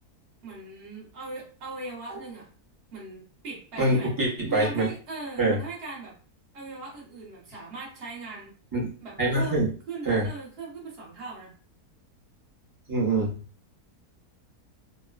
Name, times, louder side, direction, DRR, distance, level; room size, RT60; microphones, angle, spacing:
voice 1, 0.4-2.5 2.9-4.1 4.5-6.1 6.5-8.5 9.0-11.5, right 3 dB, 45° right, -4 dB, 1.0 m, -39 dB
voice 2, 3.8-4.9 5.4-5.6 8.7-8.9 9.2-9.7 10.0-10.3 12.9-13.3, right 2 dB, 20° right, -6 dB, 0.7 m, -24 dB
3.0 x 2.1 x 2.3 m, 0.39 s
omnidirectional pair, 1.7 m